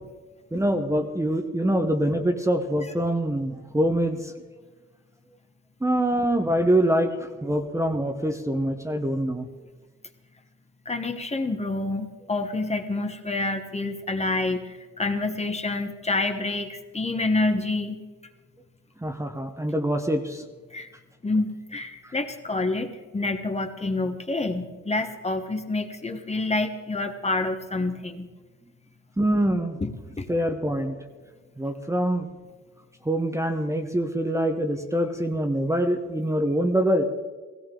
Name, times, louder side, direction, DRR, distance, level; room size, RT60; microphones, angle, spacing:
voice 1, 0.5-4.3 5.8-9.5 19.0-20.4 22.0-22.1 29.2-29.8 30.3-30.9 31.6-32.3 33.0-37.0, right 1 dB, 10° right, 5 dB, 1.0 m, -24 dB
voice 2, 10.8-18.0 20.7-20.9 21.2-28.3 29.8-30.3, left 2 dB, 20° left, 6 dB, 1.1 m, -28 dB
17.0 x 16.0 x 3.8 m, 1.3 s
cardioid pair, 90°, 30 cm